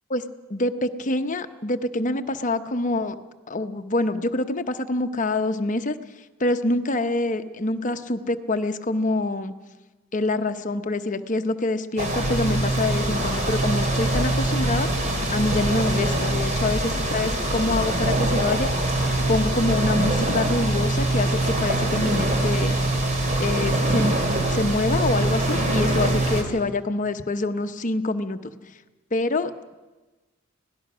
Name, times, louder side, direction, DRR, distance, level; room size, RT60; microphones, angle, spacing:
voice 1, 0.5-3.1 3.5-6.0 6.4-9.5 10.1-18.7 19.3-22.8 23.4-24.2 24.5-28.5 29.1-29.7, left 2 dB, 35° left, 8 dB, 0.9 m, -26 dB
sound 1, 12.0-26.4, right 1 dB, 35° right, 2.8 m, -23 dB
25.0 x 17.5 x 6.2 m, 1.2 s
head